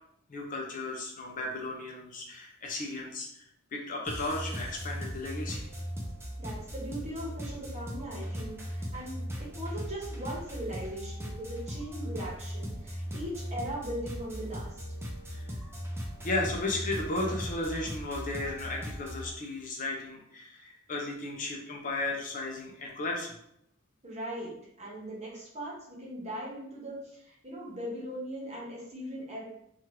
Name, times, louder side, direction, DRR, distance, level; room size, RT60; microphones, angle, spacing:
voice 1, 0.3-3.5 3.7-5.7 15.3-15.5 16.2-23.3, left 2 dB, 40° left, 0 dB, 0.5 m, -35 dB
sound 1, 4.1-19.3, equal, 10° right, 0.5 m, -38 dB
voice 2, 6.4-14.7 24.0-24.5 24.8-29.4, right 1 dB, 30° right, -5 dB, 1.0 m, -39 dB
2.9 x 2.4 x 3.1 m, 0.73 s
head